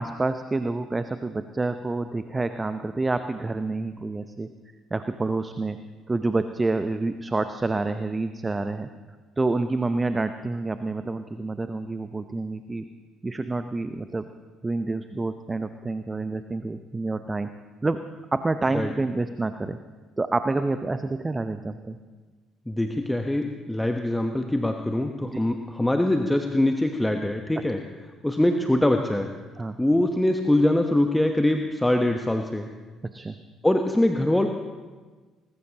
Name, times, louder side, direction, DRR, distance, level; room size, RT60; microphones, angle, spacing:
voice 1, 0.0-4.5 4.9-5.8 6.1-8.9 9.4-12.8 13.2-14.2 14.6-17.5 17.8-18.1 18.3-19.8 20.2-22.0 25.3-25.4 29.6-29.8 33.1-33.3, right 3 dB, 20° right, 10 dB, 0.7 m, -28 dB
voice 2, 22.7-27.8 28.2-29.3 29.8-32.7 33.6-34.5, left 1 dB, 10° left, 5 dB, 1.1 m, -23 dB
20.0 x 20.0 x 2.9 m, 1.4 s
figure-of-eight pair, 50°, 0 cm